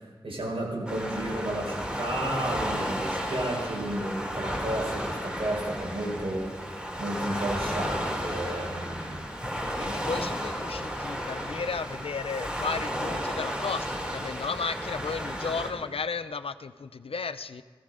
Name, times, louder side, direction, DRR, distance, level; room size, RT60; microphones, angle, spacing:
voice 1, 0.0-6.7 7.0-9.3 9.7-10.0, right 1 dB, 80° right, -2 dB, 4.9 m, -32 dB
Waves surf, 0.9-15.7, equal, 10° right, 2.9 m, -33 dB
voice 2, 9.8-17.6, left 5 dB, 85° left, 13 dB, 0.6 m, -34 dB
16.5 x 16.0 x 5.0 m, 1.5 s
wide cardioid pair, 75°, 9 cm